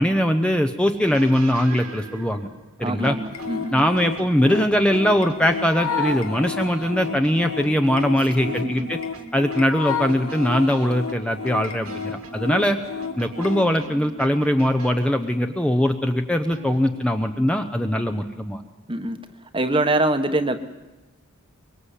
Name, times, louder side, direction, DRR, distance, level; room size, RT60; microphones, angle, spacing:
voice 1, 0.0-2.5 2.8-3.2 3.7-9.0 9.3-12.8 13.2-18.6, equal, 5° left, 5 dB, 0.8 m, -21 dB
sound 1, 1.0-15.2 16.5-17.1, right 2 dB, 85° right, 2.7 m, -41 dB
voice 2, 2.8-3.9 8.5-8.9 18.9-19.2 19.5-20.6, right 1 dB, 20° right, 9 dB, 1.2 m, -24 dB
sound 2, 3.3-13.7, left 5 dB, 75° left, 1.8 m, -31 dB
24.0 x 22.5 x 8.3 m, 1.1 s
head